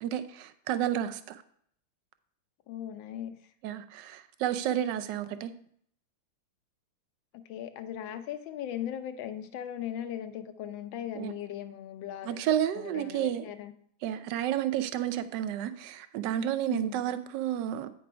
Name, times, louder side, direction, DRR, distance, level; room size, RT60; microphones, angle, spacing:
voice 1, 0.0-1.4 3.6-5.5 11.2-11.3 12.2-13.4 14.0-17.9, right 11 dB, 70° right, 1.1 m, -31 dB
voice 2, 2.7-3.4 7.3-12.4 12.8-13.7 16.7-17.0, left 10 dB, 75° left, 1.4 m, -38 dB
9.2 x 4.7 x 4.9 m
omnidirectional pair, 2.2 m